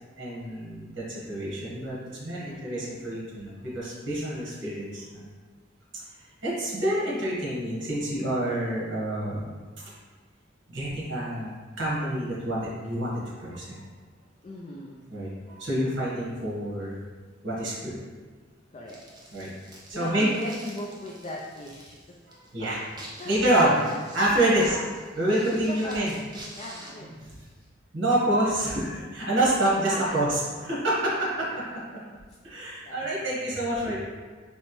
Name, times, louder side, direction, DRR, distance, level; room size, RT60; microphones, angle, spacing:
voice 1, 0.2-5.3 6.4-9.9 10.7-13.1 13.4-13.8 15.1-17.0 17.4-17.9 19.3-19.5 19.9-20.3 22.3-22.8 23.2-23.8 24.1-24.8 25.2-26.1 27.0-27.3 27.9-31.5 32.4-33.9, right 1 dB, 70° right, -6 dB, 1.3 m, -27 dB
voice 2, 2.4-3.1 14.4-15.1 18.7-19.0 19.9-22.0 22.6-22.7 23.2-23.4 23.7-24.0 24.5-24.9 25.5-26.2 26.5-27.1 29.7-30.2 31.1-31.8 32.8-33.2, left 1 dB, 30° left, -3 dB, 0.3 m, -39 dB
sound 1, 18.9-27.7, right 1 dB, 20° right, 0.6 m, -48 dB
4.3 x 2.9 x 3.0 m, 1.5 s
head